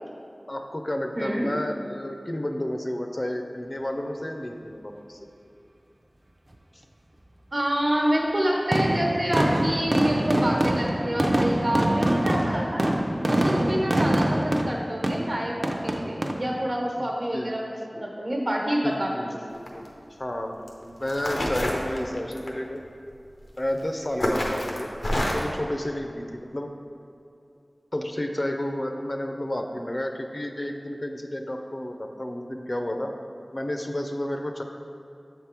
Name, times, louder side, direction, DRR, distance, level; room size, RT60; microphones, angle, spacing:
voice 1, 0.5-5.2 6.7-6.8 17.0-17.1 17.3-17.6 17.9-18.1 18.8-22.8 23.6-24.9 25.3-26.7 27.9-33.1 33.5-34.6, left 1 dB, 40° left, 4 dB, 0.5 m, -31 dB
voice 2, 1.1-1.5 7.5-12.9 13.2-19.3, equal, 70° right, -2 dB, 1.1 m, -27 dB
sound 1, 8.7-16.3, right 1 dB, 40° right, 0.5 m, -24 dB
sound 2, 19.6-19.9 20.7-20.8 21.1-22.5 23.6-23.8 24.2-25.5, left 1 dB, 85° left, 0.7 m, -27 dB
7.3 x 3.6 x 4.4 m, 2.6 s
wide cardioid pair, 40°, 0 cm